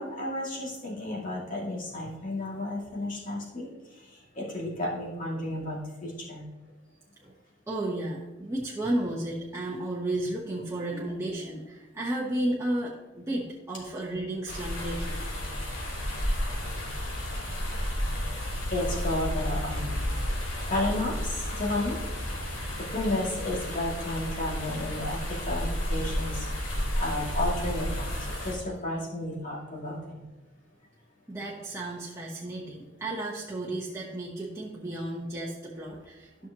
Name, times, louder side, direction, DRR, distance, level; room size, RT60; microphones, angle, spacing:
voice 1, 0.0-6.4 10.9-11.0 18.7-20.1 20.7-22.0 22.7-26.5 27.0-30.2, left 1 dB, 45° left, -3 dB, 2.4 m, -32 dB
voice 2, 7.7-15.2 31.3-36.5, right 1 dB, 15° right, -5 dB, 1.0 m, -33 dB
sound 1, 14.5-28.6, equal, 85° left, 2.3 m, -32 dB
12.5 x 6.1 x 2.9 m, 1.1 s
head